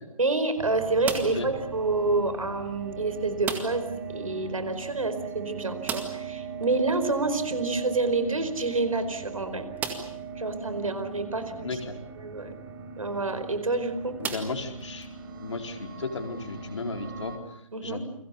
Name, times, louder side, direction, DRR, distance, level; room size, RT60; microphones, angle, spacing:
voice 1, 0.2-9.6 10.4-11.7 12.2-12.5 13.0-14.2 17.7-18.0, right 3 dB, 70° right, 10 dB, 4.7 m, -28 dB
sound 1, 0.6-17.4, right 6 dB, 40° right, 4.3 m, -40 dB
sound 2, 1.0-1.6 3.4-4.0 4.2-4.3 4.7-4.8 5.8-6.4 8.1-8.2 8.9-9.0 9.8-10.3 11.0-11.1 13.1-13.3 14.2-15.1, right 6 dB, 10° right, 2.0 m, -35 dB
voice 2, 11.6-12.0 14.2-15.1 15.4-18.1, left 3 dB, 55° left, 4 dB, 4.4 m, -35 dB
29.5 x 22.5 x 7.0 m, 0.77 s
figure-of-eight pair, 140°, 18 cm